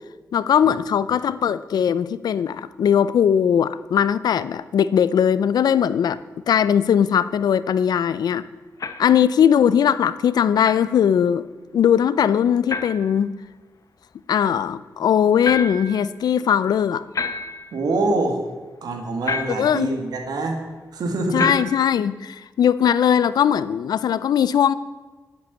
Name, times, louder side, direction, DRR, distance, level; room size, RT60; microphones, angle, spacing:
voice 1, 0.3-6.2 6.5-8.4 9.0-11.5 11.7-13.3 14.3-17.0 19.6-19.9 21.3-24.7, left 8 dB, 90° left, 16 dB, 0.5 m, -19 dB
sound 1, 8.8-9.2 10.6-10.9 12.7-13.1 15.4-16.0 17.1-17.7 19.3-19.8 21.4-21.9, left 4 dB, 60° left, 0.9 m, -28 dB
voice 2, 17.7-18.4 18.8-20.6 20.9-21.5, right 2 dB, 85° right, 3 dB, 2.0 m, -24 dB
11.0 x 8.1 x 6.9 m, 1.3 s
cardioid pair, 70°, 7 cm